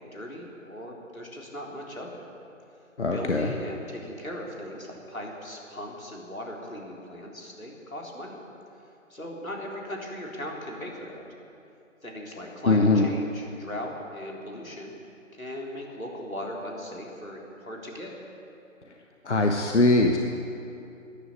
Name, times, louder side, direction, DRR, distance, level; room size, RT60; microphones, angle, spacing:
voice 1, 0.1-2.2 3.1-8.4 9.1-11.2 12.0-14.9 15.4-18.1, left 1 dB, 85° left, -1 dB, 3.8 m, -38 dB
voice 2, 3.0-3.5 12.7-13.1 19.3-20.2, left 2 dB, 60° left, 3 dB, 1.2 m, -21 dB
14.0 x 10.0 x 9.9 m, 2.7 s
figure-of-eight pair, 155°, 40 cm